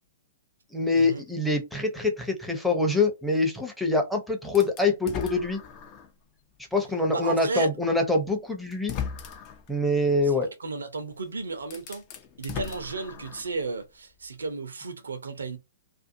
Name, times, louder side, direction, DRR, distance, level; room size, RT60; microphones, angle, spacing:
voice 1, 0.7-5.6 6.7-9.0 9.7-10.5, left 2 dB, ahead, 0.7 m, -25 dB
sound 1, 4.5-6.2 6.7-6.8 8.0-8.1 8.7-9.7 11.1-11.2 11.6-13.6, left 8 dB, 35° left, 0.6 m, -37 dB
voice 2, 7.1-7.7 10.6-12.0 12.4-15.6, right 3 dB, 75° right, 0.7 m, -33 dB
2.5 x 2.3 x 2.6 m
figure-of-eight pair, 115°, 0 cm